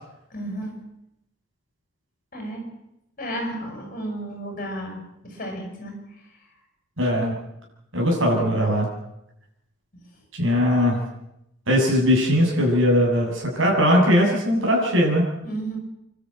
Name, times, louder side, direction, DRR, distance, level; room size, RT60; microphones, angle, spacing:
voice 1, 0.3-0.8 2.3-2.6 3.2-6.0 15.4-15.8, right 1 dB, 40° left, 2 dB, 7.8 m, -32 dB
voice 2, 7.0-7.3 7.9-8.9 10.3-11.0 11.7-15.2, equal, 60° right, -1 dB, 7.8 m, -20 dB
26.5 x 13.0 x 9.1 m, 0.84 s
head